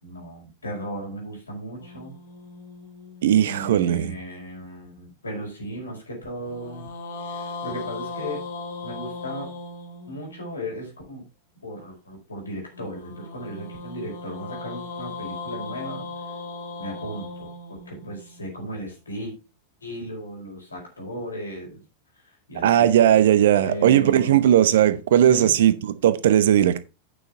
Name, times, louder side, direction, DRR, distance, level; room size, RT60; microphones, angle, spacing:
voice 1, 0.0-2.2 3.4-6.9 7.3-8.4 8.8-9.5 10.1-11.2 11.6-16.0 16.8-19.3 19.8-21.8 22.2-22.9 23.6-24.4 25.3-25.5, equal, 75° left, 4.9 m, -36 dB
sound 1, 1.8-4.2 6.4-10.6 12.7-18.9, left 3 dB, 60° left, 2.6 m, -38 dB
voice 2, 3.2-4.1 22.6-26.8, right 11 dB, 60° right, 0.9 m, -18 dB
9.0 x 6.7 x 4.4 m
figure-of-eight pair, 90°, 0 cm